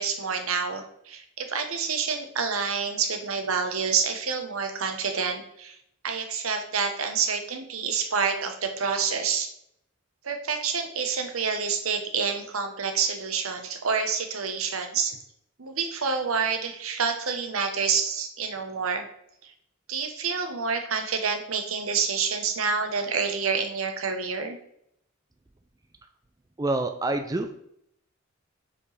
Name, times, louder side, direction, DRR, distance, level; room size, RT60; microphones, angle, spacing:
voice 1, 0.0-5.8 6.0-9.5 10.2-15.2 15.6-19.0 19.4-19.5 19.9-24.6, right 5 dB, 85° right, 6 dB, 1.0 m, -28 dB
voice 2, 26.6-27.5, right 2 dB, 15° right, 7 dB, 0.4 m, -27 dB
7.3 x 5.2 x 3.3 m, 0.73 s
head